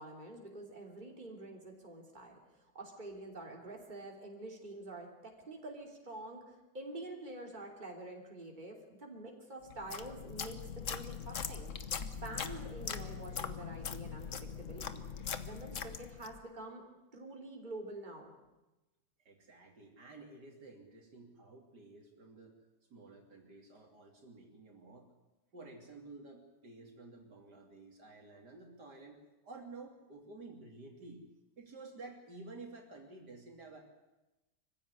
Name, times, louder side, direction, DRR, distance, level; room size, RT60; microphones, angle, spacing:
voice 1, 0.0-11.7 12.2-15.0 15.4-16.8 17.1-18.3, right 2 dB, 25° right, 1 dB, 3.3 m, -47 dB
sound 1, 9.7-16.4, left 7 dB, 50° left, 1.3 m, -41 dB
voice 2, 19.3-22.6 22.9-25.1 25.5-31.2 31.6-33.8, right 3 dB, 65° right, 2 dB, 3.4 m, -52 dB
24.5 x 15.5 x 9.8 m, 1.0 s
omnidirectional pair, 1.9 m